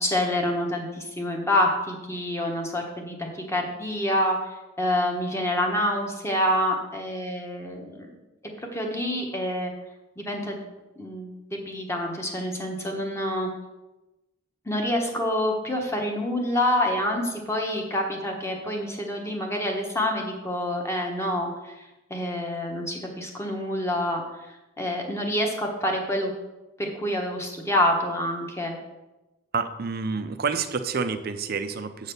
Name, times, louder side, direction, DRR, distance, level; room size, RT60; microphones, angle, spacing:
voice 1, 0.0-4.4 4.8-8.1 8.6-9.7 10.2-10.6 11.0-13.5 14.6-24.2 24.5-26.3 26.8-28.7, left 1 dB, 15° left, 1 dB, 1.2 m, -27 dB
voice 2, 29.5-32.1, right 5 dB, 50° right, 10 dB, 0.5 m, -28 dB
7.9 x 4.1 x 6.7 m, 1.0 s
head